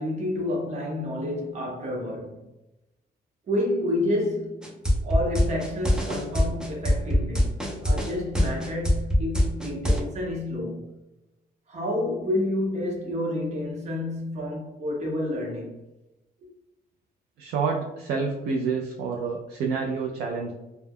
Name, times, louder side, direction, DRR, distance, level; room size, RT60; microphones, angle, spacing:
voice 1, 0.0-2.5 3.5-4.7 5.0-7.5 7.8-10.9 11.7-15.8, left 1 dB, 45° right, 0.8 m, -29 dB
sound 1, 4.6-10.0, left 1 dB, 5° right, 0.4 m, -22 dB
voice 2, 17.4-20.5, right 5 dB, 90° right, 0.4 m, -28 dB
2.2 x 2.1 x 3.4 m
cardioid pair, 145°, 16 cm